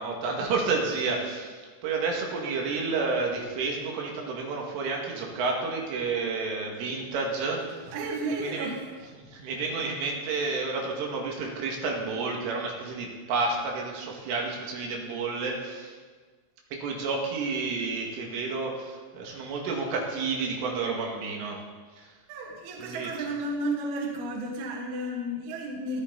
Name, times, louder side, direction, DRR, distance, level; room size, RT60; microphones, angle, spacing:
voice 1, 0.0-7.8 8.4-8.7 9.2-15.9 16.7-21.6 22.0-22.1 22.8-23.1, right 4 dB, 75° right, -1 dB, 4.6 m, -30 dB
voice 2, 7.9-8.9 22.3-26.0, right 1 dB, 60° right, 0 dB, 3.5 m, -32 dB
21.5 x 14.5 x 4.1 m, 1.5 s
omnidirectional pair, 5.9 m